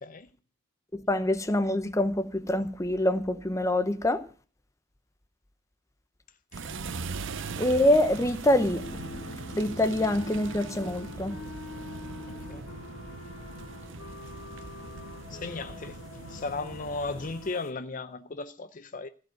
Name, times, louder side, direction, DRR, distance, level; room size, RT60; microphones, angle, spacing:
voice 1, 0.9-4.2 7.6-8.8 9.5-11.3, left 1 dB, 15° left, 0.8 m, -25 dB
sound 1, 6.5-17.5, right 4 dB, 60° right, 0.7 m, -40 dB
Wind instrument woodwind instrument, 8.7-15.7, left 3 dB, 80° left, 2.3 m, -46 dB
sound 2, 8.7-17.7, left 3 dB, 60° left, 1.9 m, -48 dB
voice 2, 15.3-16.0 16.3-19.1, left 3 dB, 40° left, 0.6 m, -36 dB
15.5 x 5.3 x 9.1 m
head